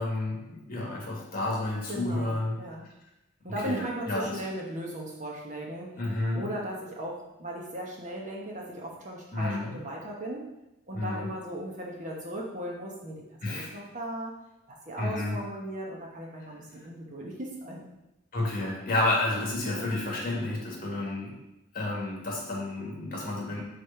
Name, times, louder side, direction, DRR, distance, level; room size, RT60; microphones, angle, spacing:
voice 1, 0.0-2.6 3.6-4.4 6.0-6.5 9.3-9.8 10.9-11.3 13.4-13.7 15.0-15.4 18.3-21.3 21.7-23.6, left 2 dB, 40° left, -3 dB, 1.7 m, -30 dB
voice 2, 1.9-2.9 3.4-6.0 6.3-10.5 10.9-14.3 14.7-17.9, right 1 dB, 35° right, -2 dB, 1.1 m, -37 dB
4.9 x 4.2 x 5.7 m, 0.92 s
head